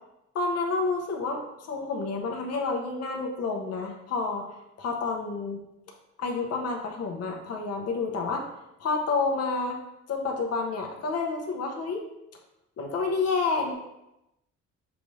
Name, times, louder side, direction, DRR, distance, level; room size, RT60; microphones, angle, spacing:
voice 1, 0.3-4.5 4.8-5.6 6.2-8.4 8.8-9.8 10.1-12.0 12.8-13.8, left 4 dB, 55° left, 1 dB, 0.8 m, -29 dB
5.9 x 2.6 x 3.1 m, 0.89 s
cardioid pair, 90°, 30 cm